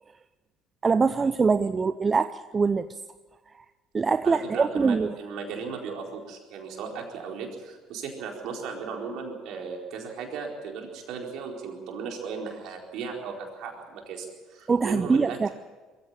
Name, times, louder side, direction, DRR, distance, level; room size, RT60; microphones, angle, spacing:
voice 1, 0.8-2.9 3.9-5.1 14.7-15.5, right 4 dB, 30° right, 12 dB, 0.7 m, -23 dB
voice 2, 4.2-15.4, right 5 dB, 65° right, 1 dB, 4.4 m, -36 dB
22.5 x 15.0 x 8.7 m, 1.3 s
hypercardioid pair, 60°, 0 cm